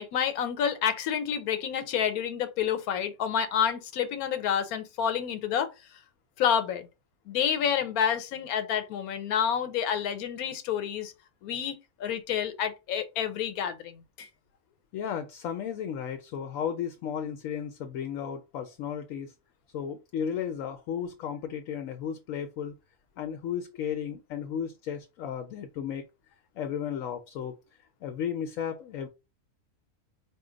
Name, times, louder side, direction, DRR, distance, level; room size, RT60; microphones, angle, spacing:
voice 1, 0.0-5.7 6.4-6.9 7.3-11.1 11.4-14.3, left 8 dB, 90° left, 1.1 m, -29 dB
voice 2, 14.9-19.3 19.7-22.7 23.2-26.0 26.6-27.6 28.0-29.1, left 8 dB, 70° left, 0.9 m, -34 dB
4.3 x 2.2 x 3.7 m
omnidirectional pair, 1.5 m